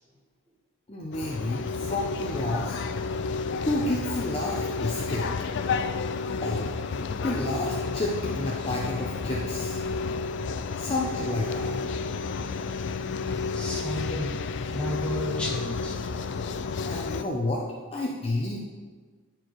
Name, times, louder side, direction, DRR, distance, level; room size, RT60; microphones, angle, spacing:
voice 1, 0.9-2.8 3.6-5.3 6.4-6.7 7.1-9.8 10.8-11.7 16.8-17.6 17.9-18.7, left 1 dB, 25° left, -3 dB, 0.7 m, -30 dB
sound 1, 1.1-17.2, left 4 dB, 55° left, 0.4 m, -31 dB
voice 2, 13.5-14.3 14.6-16.0, left 1 dB, 5° left, -5 dB, 1.4 m, -32 dB
9.5 x 4.6 x 4.6 m, 1.5 s
head